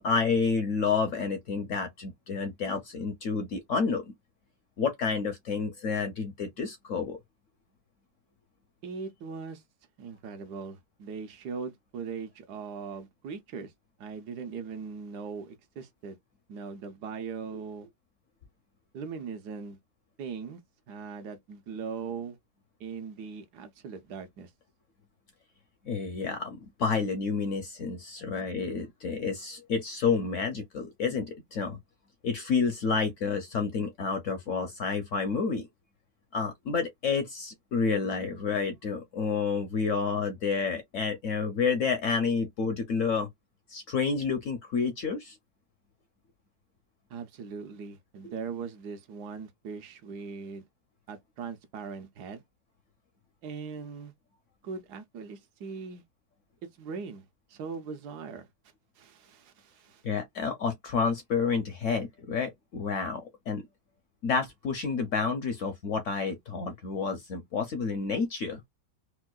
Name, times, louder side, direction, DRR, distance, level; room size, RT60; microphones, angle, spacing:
voice 1, 0.0-4.0 4.8-7.2 25.9-31.8 32.2-35.7 36.3-43.3 43.7-45.4 48.2-48.3 60.0-63.6 64.2-68.6, left 5 dB, 65° left, 0.8 m, -29 dB
voice 2, 8.8-9.6 10.0-13.7 14.0-16.2 16.5-17.9 18.9-19.8 20.2-20.6 20.9-22.4 22.8-24.5 47.1-50.6 51.1-52.4 53.4-54.1 54.6-56.0 56.8-57.2 57.5-58.5 59.0-60.0, right 5 dB, 75° right, 1.2 m, -40 dB
4.4 x 2.1 x 2.3 m
omnidirectional pair, 1.8 m